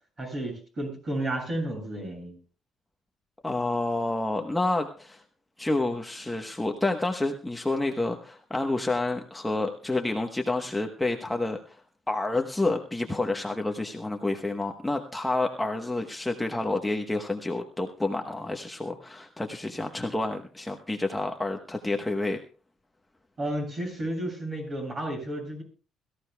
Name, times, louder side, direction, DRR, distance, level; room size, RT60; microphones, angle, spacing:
voice 1, 0.2-2.4 23.4-25.6, right 1 dB, 30° right, 2 dB, 7.6 m, -32 dB
voice 2, 3.4-5.2 5.6-11.8 12.1-22.4, left 2 dB, 10° left, 3 dB, 1.2 m, -29 dB
22.5 x 14.5 x 2.3 m, 0.37 s
cardioid pair, 120°, 0 cm